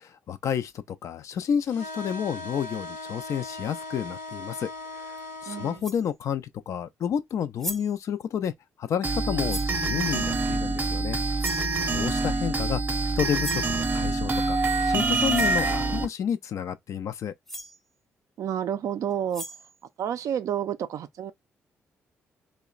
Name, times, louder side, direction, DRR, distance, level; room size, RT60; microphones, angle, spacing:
voice 1, 0.0-4.7 4.9-5.2 5.4-8.5 8.8-11.2 11.9-12.8 13.2-17.3, left 8 dB, 60° left, 0.3 m, -30 dB
sound 1, 1.7-5.8, left 2 dB, 90° left, 0.9 m, -39 dB
sound 2, 5.2-5.3 5.8-6.1 7.3-7.4 7.6-8.0 9.5-9.8 11.4-11.7 13.4-13.7 14.9-15.0 15.3-15.6 17.2-17.3 17.5-17.8 19.1-19.8, equal, 5° left, 0.6 m, -37 dB
voice 2, 5.5-5.8 18.4-19.4 20.0-21.3, right 9 dB, 65° right, 0.3 m, -30 dB
sound 3, 9.0-16.1, right 3 dB, 35° right, 0.7 m, -26 dB
2.9 x 2.1 x 2.3 m
supercardioid pair, 50°, 6 cm